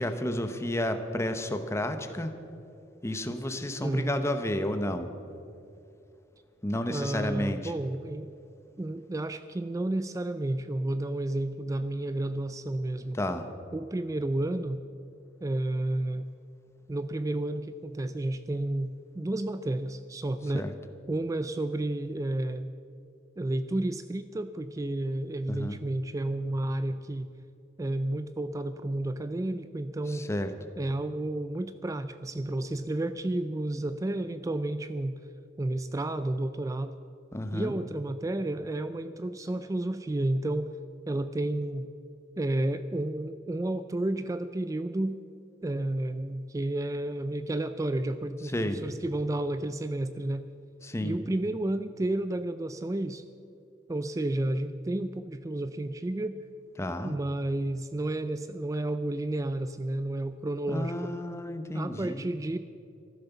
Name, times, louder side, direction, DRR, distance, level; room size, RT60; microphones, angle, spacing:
voice 1, 0.0-2.3 3.0-5.1 6.6-7.7 13.1-13.5 20.5-20.7 25.5-25.8 30.1-30.5 37.3-37.7 48.5-48.8 50.8-51.2 56.8-57.1 60.7-62.3, left 1 dB, 15° left, 8 dB, 0.8 m, -31 dB
voice 2, 6.9-8.3 8.8-13.2 13.7-14.8 15.4-16.3 16.9-20.7 21.1-22.7 23.4-27.3 27.8-30.3 30.8-35.2 35.6-36.9 37.5-40.7 41.1-41.9 42.4-45.2 45.6-50.5 51.0-53.2 53.9-56.4 57.0-61.1 61.7-62.6, right 1 dB, 15° right, 11 dB, 0.3 m, -31 dB
14.0 x 12.0 x 7.0 m, 2.6 s
head